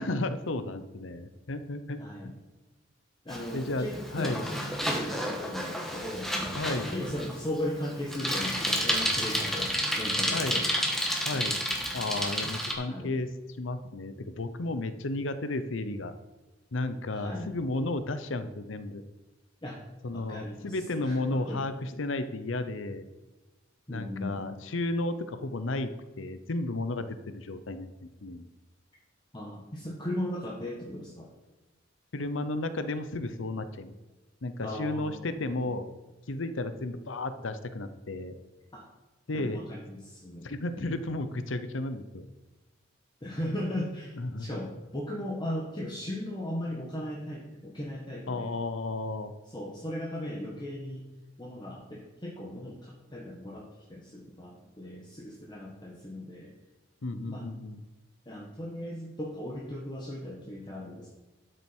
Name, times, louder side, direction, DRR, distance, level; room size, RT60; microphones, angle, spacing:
voice 1, 0.0-2.3 3.5-4.4 6.5-6.9 10.3-10.6 11.2-11.6 11.9-13.3 13.6-16.1 16.7-19.0 20.0-23.1 23.9-25.9 26.2-28.5 32.1-33.9 34.4-35.9 36.3-38.3 39.3-39.6 40.4-42.3 44.1-44.6 48.3-49.3 57.0-57.8, left 2 dB, 90° left, 11 dB, 0.8 m, -33 dB
voice 2, 2.0-2.3 3.2-10.7 12.9-13.2 17.1-17.5 19.6-19.8 20.1-21.6 23.9-24.4 29.3-31.3 34.6-35.6 38.7-38.9 39.3-40.5 40.7-41.0 43.2-48.5 49.4-51.0 51.4-56.6 57.1-57.5 58.2-61.1, left 1 dB, 25° left, -2 dB, 1.3 m, -37 dB
Bicycle, 3.3-12.7, equal, ahead, 1.4 m, -31 dB
12.5 x 6.4 x 4.5 m, 1.2 s
head